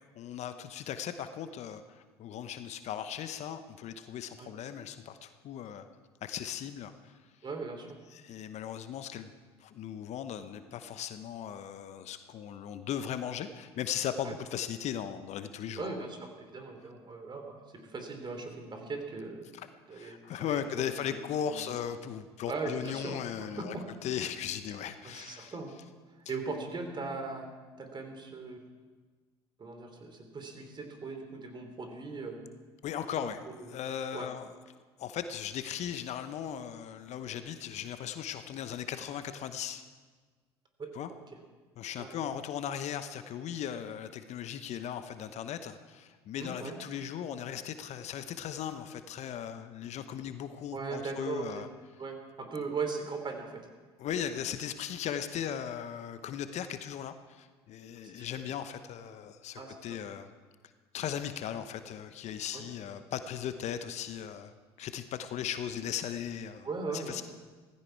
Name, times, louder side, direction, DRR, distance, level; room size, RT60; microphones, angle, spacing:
voice 1, 0.1-5.9 6.2-7.2 8.1-9.3 9.6-16.0 19.5-23.8 24.0-25.5 32.8-34.5 35.0-39.8 40.9-41.1 41.8-51.7 54.0-60.3 60.9-64.5 64.8-66.7 66.9-67.2, left 9 dB, 55° left, 10 dB, 0.9 m, -38 dB
voice 2, 7.4-8.0 14.2-14.3 15.8-19.5 19.9-21.7 22.5-23.2 23.6-23.8 25.0-25.7 26.3-27.5 27.8-28.6 29.6-32.4 33.2-33.3 33.6-33.7 34.1-34.3 40.8-41.2 42.0-42.1 46.4-46.7 50.7-51.7 52.0-53.7 58.0-58.3 59.5-60.0 62.5-62.6 66.6-67.2, right 4 dB, 35° right, 5 dB, 3.2 m, -39 dB
16.5 x 15.0 x 4.7 m, 1.4 s
hypercardioid pair, 65°, 14 cm